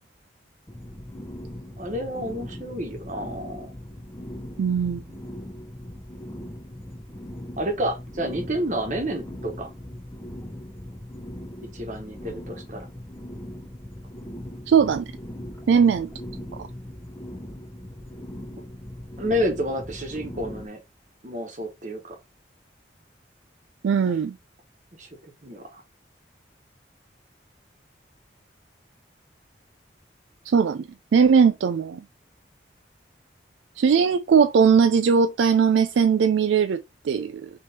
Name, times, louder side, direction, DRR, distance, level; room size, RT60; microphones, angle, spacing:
sound 1, 0.7-20.7, left 1 dB, 15° left, 0.6 m, -39 dB
voice 1, 1.8-3.7 7.6-9.7 11.7-12.9 19.2-20.8 21.2-22.2 24.9-25.1 25.4-25.8, equal, 40° right, 1.1 m, -30 dB
voice 2, 4.6-5.0 14.7-15.0 15.7-16.1 16.6-16.7 23.8-24.3 30.5-32.0 33.8-37.5, right 6 dB, 85° right, 0.3 m, -19 dB
3.5 x 3.1 x 4.1 m
head